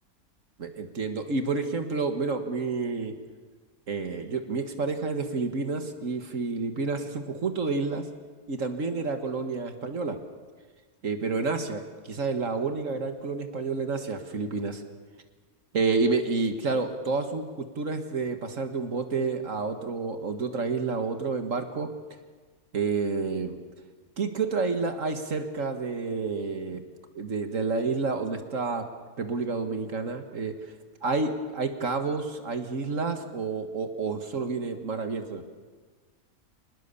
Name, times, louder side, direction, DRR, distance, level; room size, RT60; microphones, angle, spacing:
voice 1, 0.6-3.2 3.9-8.0 8.5-10.2 11.0-14.8 15.7-21.9 22.7-23.6 24.2-26.8 27.1-28.9 29.2-30.5 31.0-35.5, right 4 dB, 60° right, 7 dB, 2.0 m, -29 dB
26.0 x 20.0 x 7.1 m, 1.5 s
omnidirectional pair, 1.5 m